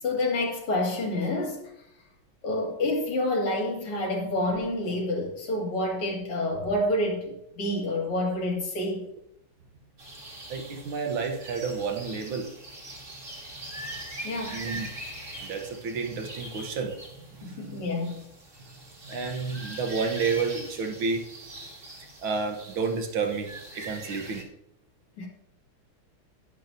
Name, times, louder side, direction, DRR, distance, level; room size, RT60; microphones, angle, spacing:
voice 1, 0.0-1.7 2.4-9.1 14.2-14.6 17.4-18.2 25.2-25.3, left 1 dB, 90° left, -1 dB, 3.1 m, -28 dB
sound 1, 10.0-24.4, right 1 dB, 35° right, 2.1 m, -42 dB
voice 2, 10.5-12.5 14.5-14.9 15.4-17.0 17.4-17.8 18.6-18.7 19.0-21.2 22.2-24.5, right 5 dB, 70° right, 3 dB, 1.8 m, -30 dB
10.5 x 10.5 x 2.7 m, 0.82 s
omnidirectional pair, 2.4 m